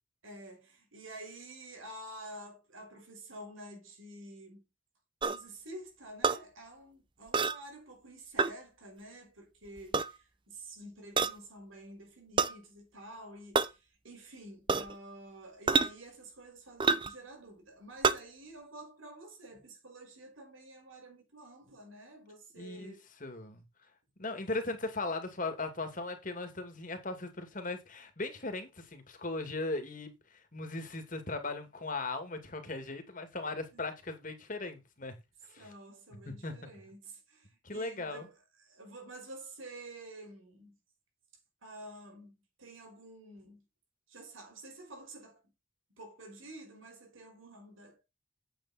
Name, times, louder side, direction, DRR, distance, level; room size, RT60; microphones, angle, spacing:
voice 1, 0.2-4.7 5.3-23.0 24.5-24.6 33.7-33.8 35.6-40.8 41.6-43.6 44.1-45.4 45.9-48.1, right 1 dB, 90° right, 5.7 m, -49 dB
sound 1, 5.2-5.4 6.2-6.4 7.3-7.6 8.4-8.5 9.8-10.1 11.2-11.4 12.4-12.5 13.5-13.7 14.7-14.9 15.7-15.9 16.8-17.1 18.0-18.2, right 4 dB, 25° right, 0.6 m, -27 dB
voice 2, 22.5-22.9 23.2-23.6 24.2-35.1 35.5-35.7 36.4-36.5 37.6-38.3, left 2 dB, 40° left, 2.4 m, -38 dB
8.8 x 8.6 x 4.3 m
head